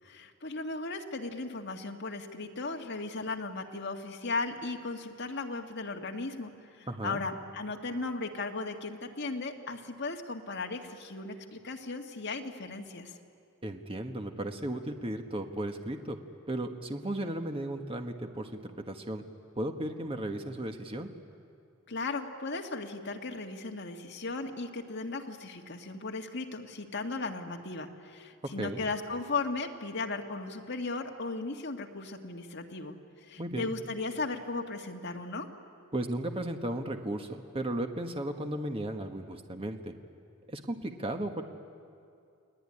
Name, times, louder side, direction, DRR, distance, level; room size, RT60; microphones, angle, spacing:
voice 1, 0.0-13.2 21.9-33.0 33.3-35.5, left 3 dB, 60° left, 3 dB, 2.0 m, -36 dB
voice 2, 6.9-7.2 13.6-16.2 16.5-19.2 19.6-21.1 28.6-28.8 33.4-33.7 35.9-39.9 40.5-41.4, right 1 dB, 25° right, 5 dB, 1.5 m, -35 dB
30.0 x 19.5 x 10.0 m, 2.4 s
head